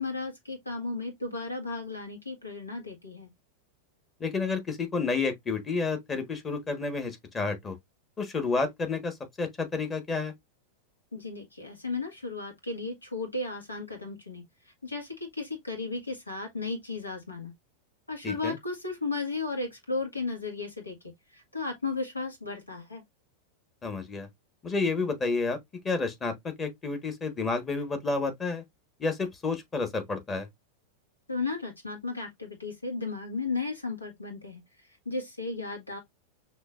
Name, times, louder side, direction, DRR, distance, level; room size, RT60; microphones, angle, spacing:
voice 1, 0.0-3.3 11.1-14.4 14.8-17.5 18.1-21.0 21.3-23.0 31.3-34.6 35.0-36.0, left 3 dB, 80° left, 1.7 m, -34 dB
voice 2, 4.2-7.8 8.2-10.3 18.2-18.6 23.8-24.3 24.6-25.6 25.8-28.6 29.0-30.5, left 4 dB, 20° left, 1.4 m, -30 dB
6.2 x 2.9 x 2.5 m
figure-of-eight pair, 90°, 0 cm